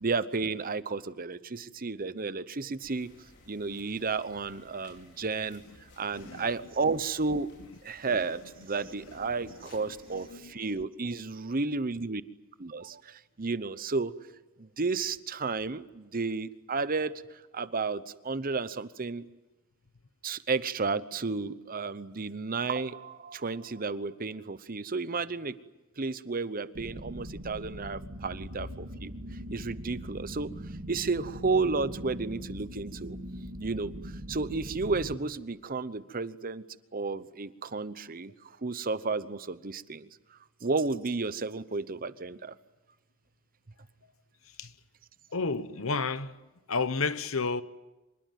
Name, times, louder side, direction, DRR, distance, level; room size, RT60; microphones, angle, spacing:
voice 1, 0.0-3.1 3.5-5.6 6.0-7.5 7.8-12.2 12.6-14.1 14.6-19.3 20.2-25.6 26.0-29.1 29.5-33.2 33.6-36.6 36.9-42.5, right 4 dB, 45° right, 0.9 m, -32 dB
sound 1, 2.8-10.3, left 2 dB, 55° left, 5.2 m, -58 dB
voice 2, 6.2-6.5 10.1-10.5 44.6-44.7 45.3-46.4 46.7-47.6, left 4 dB, 70° left, 1.1 m, -31 dB
sound 2, 26.7-35.1, equal, 70° right, 2.3 m, -41 dB
25.5 x 21.0 x 9.3 m
head